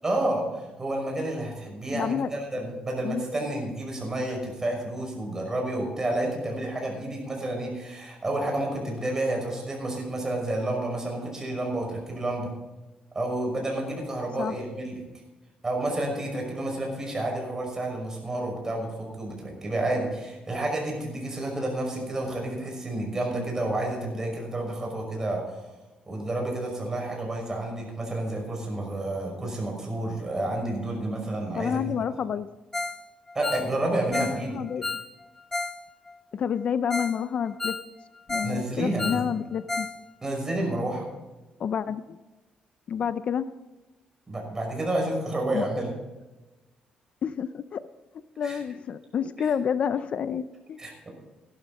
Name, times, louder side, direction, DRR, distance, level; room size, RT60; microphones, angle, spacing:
voice 1, 0.0-12.5 13.1-15.0 15.6-25.6 26.1-31.8 33.3-34.6 38.4-39.2 40.2-41.1 44.3-45.9 48.4-48.6 50.8-51.1, right 1 dB, 20° right, 0 dB, 5.7 m, -30 dB
voice 2, 1.9-2.3 3.0-3.2 14.4-14.6 31.6-32.6 34.1-34.9 36.3-37.8 38.3-39.9 41.6-42.2 42.9-43.5 45.5-45.7 47.2-47.8 48.4-50.8, left 8 dB, 50° left, 13 dB, 0.5 m, -29 dB
Ringtone, 32.7-33.0 33.3-35.8 36.1-36.2 36.6-36.7 36.9-37.2 37.5-38.6 38.8-40.0 40.2-40.3 40.8-40.9, left 3 dB, 15° left, 0.8 m, -32 dB
16.5 x 12.0 x 4.1 m, 1.1 s
cardioid pair, 130°, 3 cm